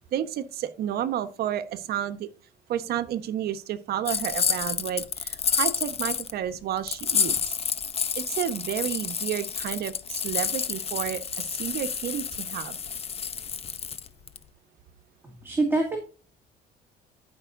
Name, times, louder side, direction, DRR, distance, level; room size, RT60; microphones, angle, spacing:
voice 1, 0.1-2.3 2.7-7.4 8.2-12.8, right 10 dB, 70° right, 10 dB, 1.1 m, -31 dB
sound 1, 4.1-6.3 6.9-14.4, left 7 dB, 35° left, 0.8 m, -29 dB
voice 2, 15.4-16.0, right 2 dB, 15° right, 0 dB, 2.2 m, -24 dB
14.0 x 5.6 x 2.6 m, 0.37 s
cardioid pair, 110°, 17 cm